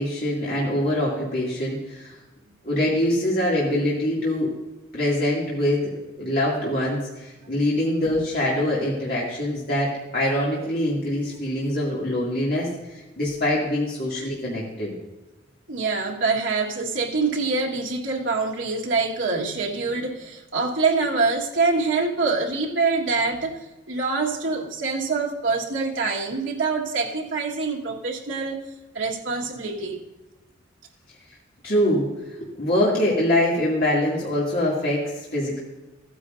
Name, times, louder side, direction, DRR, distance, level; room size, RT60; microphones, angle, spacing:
voice 1, 0.0-2.2 2.6-4.5 4.9-5.9 6.2-12.7 13.2-14.9 31.6-32.0 32.4-35.6, left 1 dB, 50° left, -6 dB, 2.3 m, -24 dB
voice 2, 15.7-28.6 28.9-30.0, right 4 dB, 80° right, -2 dB, 1.6 m, -25 dB
15.0 x 9.6 x 2.6 m, 1.1 s
head